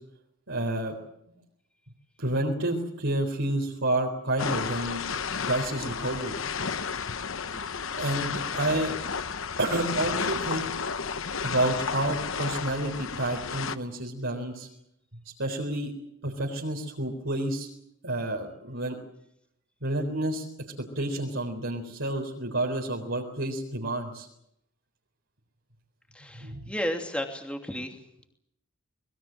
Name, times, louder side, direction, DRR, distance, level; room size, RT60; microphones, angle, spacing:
voice 1, 0.5-0.9 2.2-5.0 5.4-6.4 8.0-8.9 9.6-10.7 11.4-14.7 15.4-15.9 16.2-17.7 18.0-19.0 19.8-20.5 20.9-24.3 26.4-26.6, right 1 dB, 60° right, -1 dB, 4.0 m, -29 dB
sound 1, 4.4-13.8, left 6 dB, 65° left, 1.0 m, -32 dB
voice 2, 26.1-27.9, equal, 5° left, 3 dB, 2.8 m, -33 dB
25.5 x 21.5 x 7.6 m, 0.77 s
head